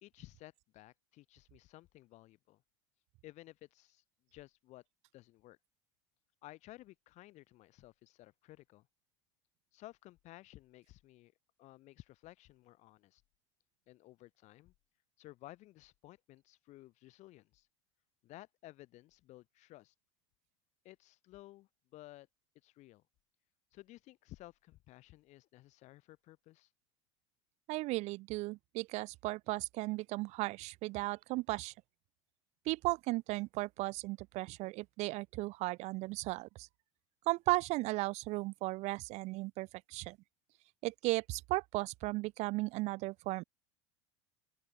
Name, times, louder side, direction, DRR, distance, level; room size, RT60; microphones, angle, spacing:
voice 1, 0.0-2.6 3.2-4.0 4.3-4.8 5.1-5.6 6.4-8.9 9.7-11.3 11.6-13.2 13.9-14.7 15.2-17.7 18.2-19.9 20.8-22.3 22.6-23.0 23.7-26.7, left 17 dB, 50° left, 1.1 m, -55 dB
voice 2, 27.7-31.7 32.7-36.7 37.3-40.2 40.8-43.4, right 21 dB, 50° right, 0.4 m, -36 dB
open air
hypercardioid pair, 80°, 15 cm